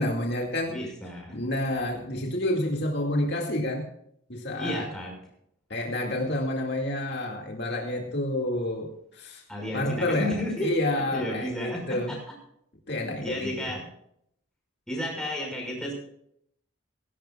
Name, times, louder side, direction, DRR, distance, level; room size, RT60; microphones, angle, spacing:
voice 1, 0.0-0.7 1.3-3.8 4.3-4.9 5.7-9.4 9.7-10.3 10.6-12.1 12.9-13.7, left 1 dB, 55° left, 0 dB, 2.2 m, -29 dB
voice 2, 0.7-1.4 4.6-5.1 9.5-10.7 11.1-12.2 13.0-13.8 14.9-15.9, left 1 dB, 5° left, -1 dB, 5.7 m, -32 dB
17.5 x 17.0 x 2.4 m, 0.71 s
head